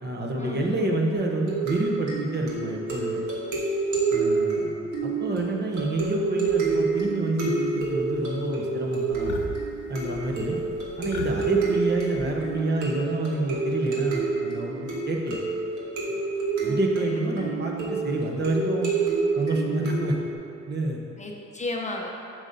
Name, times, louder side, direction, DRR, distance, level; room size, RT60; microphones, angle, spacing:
voice 1, 0.0-3.2 4.1-4.7 5.0-9.3 9.9-10.6 11.0-15.4 16.1-16.2 16.6-18.9 19.3-20.2 20.7-21.0, right 2 dB, 35° right, 0 dB, 0.9 m, -28 dB
sound 1, 1.1-20.3, right 4 dB, 70° right, 1.5 m, -28 dB
sound 2, 6.5-7.1 7.5-8.2 8.4-8.7 9.1-12.6, left 4 dB, 80° left, 0.9 m, -40 dB
voice 2, 16.6-17.6 21.2-22.1, left 2 dB, 25° left, 0 dB, 0.7 m, -35 dB
7.2 x 6.4 x 2.7 m, 2.6 s
cardioid pair, 90°, 30 cm